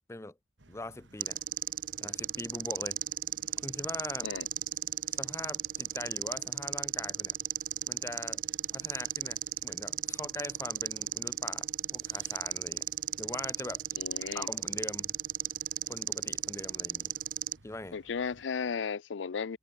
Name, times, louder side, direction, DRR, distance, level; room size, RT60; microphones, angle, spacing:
sound 1, 0.6-18.5, right 2 dB, 90° right, 2.2 m, -59 dB
voice 1, 0.7-1.4 2.0-3.0 3.6-4.3 5.1-7.3 7.8-8.4 8.7-12.9 13.2-13.8 14.3-15.2 15.9-17.1 17.6-18.0, left 2 dB, 15° left, 0.7 m, -42 dB
sound 2, 1.2-17.6, right 14 dB, 45° right, 0.4 m, -35 dB
voice 2, 14.0-14.5 17.9-19.6, left 6 dB, 90° left, 0.5 m, -35 dB
head